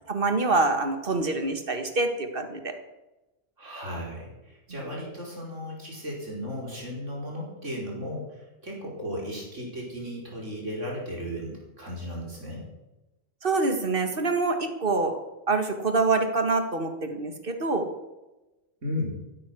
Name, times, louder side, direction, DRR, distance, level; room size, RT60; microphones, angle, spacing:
voice 1, 0.1-2.7 13.4-15.1 15.5-17.9, right 3 dB, 50° right, 6 dB, 2.0 m, -25 dB
voice 2, 3.6-12.7 18.8-19.2, left 1 dB, 85° right, -2 dB, 5.2 m, -35 dB
14.5 x 13.0 x 6.2 m, 1.0 s
omnidirectional pair, 1.2 m